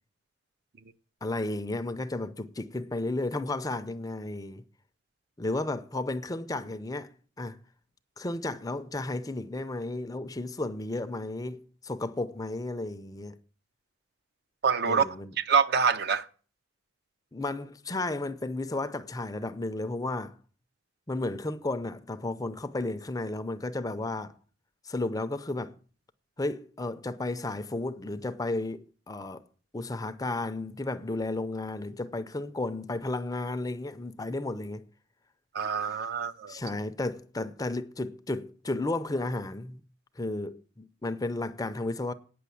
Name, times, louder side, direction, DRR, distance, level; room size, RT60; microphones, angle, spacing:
voice 1, 1.2-4.6 5.4-7.6 8.2-13.4 14.9-15.3 17.3-20.4 21.1-24.3 24.8-25.7 26.4-29.4 29.7-34.9 35.8-36.0 36.5-39.8 40.2-42.1, left 2 dB, 20° left, 0.5 m, -33 dB
voice 2, 14.6-15.1 15.4-16.3 35.5-36.5, right 6 dB, 55° right, 0.6 m, -25 dB
9.3 x 6.3 x 8.4 m
head